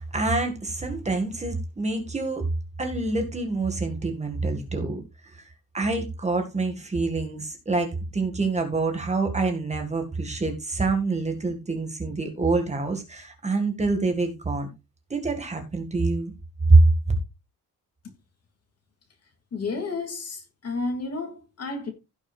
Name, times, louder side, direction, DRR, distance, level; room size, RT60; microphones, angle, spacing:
voice 1, 0.0-2.5 2.8-5.5 5.7-14.7 15.1-16.3 16.7-16.8, right 3 dB, 20° right, 1.9 m, -25 dB
voice 2, 19.5-21.9, left 3 dB, 45° left, 2.7 m, -31 dB
16.5 x 6.2 x 2.4 m
wide cardioid pair, 170°, 35 cm